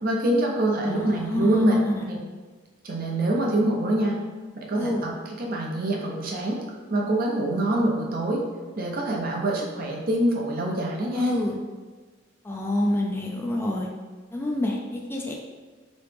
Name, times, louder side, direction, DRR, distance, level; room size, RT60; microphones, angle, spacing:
voice 1, 0.0-1.8 2.1-2.2 2.8-4.2 4.6-5.1 5.4-6.6 6.9-8.4 8.8-11.3, right 1 dB, 50° right, -1 dB, 0.6 m, -25 dB
voice 2, 0.8-2.1 4.7-5.0 11.1-11.6 12.4-13.9 14.3-15.3, left 1 dB, 10° left, 0 dB, 0.3 m, -27 dB
3.1 x 2.9 x 3.3 m, 1.4 s
head